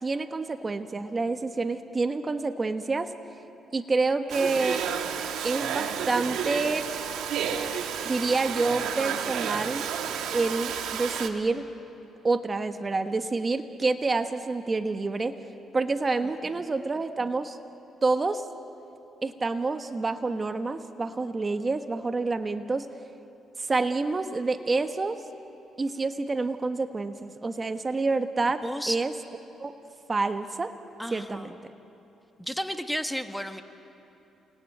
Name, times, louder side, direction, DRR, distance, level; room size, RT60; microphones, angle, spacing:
voice 1, 0.0-3.1 3.7-4.8 5.4-6.9 8.0-9.9 10.3-11.7 12.2-15.4 15.7-17.6 18.0-18.4 19.2-22.9 23.6-25.2 25.8-29.1 29.6-29.7 30.1-30.7 31.1-31.5, right 3 dB, 30° right, 8 dB, 1.2 m, -28 dB
Domestic sounds home sounds, 4.3-11.3, right 8 dB, 85° right, 1.9 m, -31 dB
voice 2, 28.6-29.0 31.0-31.5 32.4-33.6, equal, 5° left, 7 dB, 1.3 m, -33 dB
29.5 x 20.5 x 9.3 m, 3.0 s
cardioid pair, 90°, 0 cm